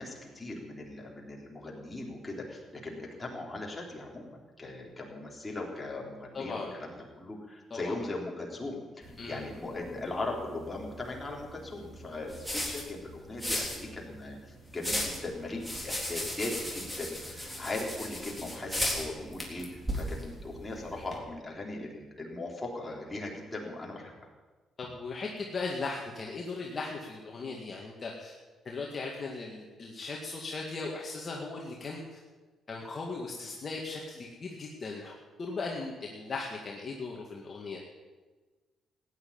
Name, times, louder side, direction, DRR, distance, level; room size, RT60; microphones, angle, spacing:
voice 1, 0.0-24.3, left 2 dB, 15° left, -2 dB, 3.7 m, -39 dB
voice 2, 6.3-6.7 7.7-8.0 9.2-9.4 24.8-28.3 28.6-32.2 32.7-37.8, left 3 dB, 40° left, -1 dB, 2.0 m, -38 dB
sound 1, 9.0-21.2, equal, 5° right, 3.6 m, -37 dB
15.0 x 9.9 x 8.8 m, 1.3 s
cardioid pair, 110°, 0 cm